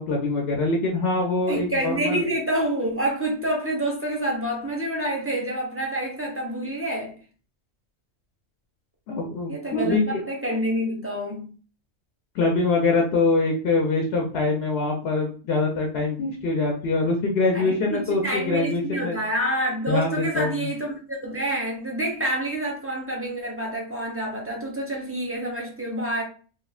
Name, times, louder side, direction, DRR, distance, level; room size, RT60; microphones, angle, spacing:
voice 1, 0.0-2.2 9.1-10.2 12.3-19.2 19.9-20.7, left 3 dB, 65° left, 0.8 m, -24 dB
voice 2, 1.5-7.1 9.5-11.5 17.5-26.2, right 1 dB, 15° right, 0.5 m, -27 dB
3.5 x 2.0 x 2.3 m
omnidirectional pair, 1.2 m